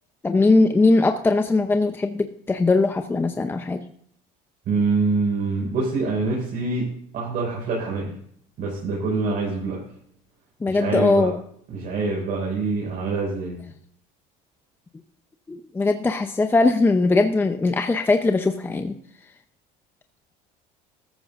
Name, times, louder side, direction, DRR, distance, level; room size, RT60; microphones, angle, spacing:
voice 1, 0.2-3.8 10.6-11.4 15.5-18.9, left 3 dB, 15° left, 6 dB, 0.7 m, -20 dB
voice 2, 4.7-6.9 7.1-8.1 8.6-9.8 10.7-11.3 11.7-13.6, right 3 dB, 55° right, -3 dB, 5.7 m, -25 dB
14.5 x 14.0 x 2.6 m, 0.66 s
cardioid pair, 135°, 17 cm